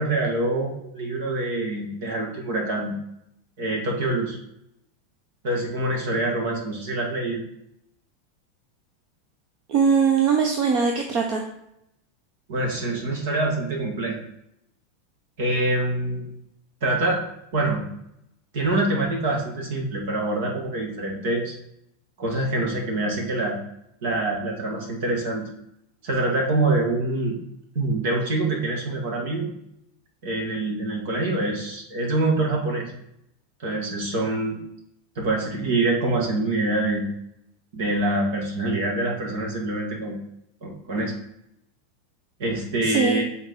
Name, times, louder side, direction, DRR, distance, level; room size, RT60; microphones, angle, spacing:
voice 1, 0.0-2.9 3.6-4.4 5.4-7.4 12.5-14.2 15.4-16.3 16.8-17.2 17.5-17.8 18.5-21.5 22.2-23.6 24.0-25.4 26.0-27.4 27.7-29.5 30.2-32.9 33.6-34.6 35.2-37.0 37.7-40.2 40.6-41.1 42.4-43.2, right 2 dB, 70° right, 0 dB, 2.3 m, -25 dB
voice 2, 9.7-11.4 42.8-43.2, right 6 dB, 50° right, 2 dB, 1.1 m, -21 dB
7.9 x 4.1 x 4.0 m, 0.79 s
hypercardioid pair, 105°, 0 cm